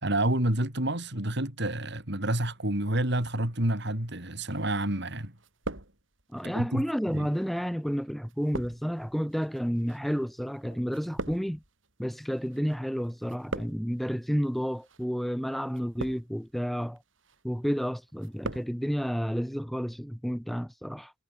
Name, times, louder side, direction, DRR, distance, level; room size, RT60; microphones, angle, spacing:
voice 1, 0.0-5.4 6.4-6.8 7.1-7.3, right 1 dB, 60° right, 5.1 m, -29 dB
sound 1, 4.5-5.1 5.4-6.4 7.1-12.8 13.0-14.0 14.7-15.0 15.7-16.5 17.0-17.4 17.8-18.7 19.0-19.1, right 2 dB, 80° right, 6.1 m, -41 dB
voice 2, 6.3-11.6 12.0-17.0 17.4-21.1, equal, ahead, 2.9 m, -31 dB
head